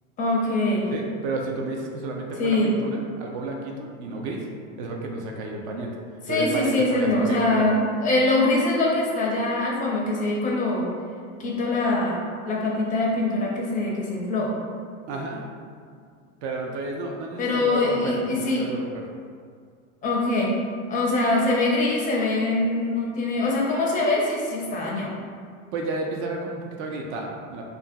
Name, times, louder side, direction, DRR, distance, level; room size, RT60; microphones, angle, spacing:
voice 1, 0.2-0.9 2.4-2.7 6.3-10.9 11.4-14.5 17.4-18.7 20.0-20.6 20.9-25.1, left 2 dB, 20° left, -3 dB, 0.4 m, -23 dB
voice 2, 0.9-4.5 4.8-5.9 6.3-7.7 15.1-15.4 16.4-19.0 25.7-27.7, right 2 dB, 60° right, 1 dB, 0.5 m, -31 dB
2.5 x 2.2 x 2.5 m, 2.1 s
hypercardioid pair, 110°, 39 cm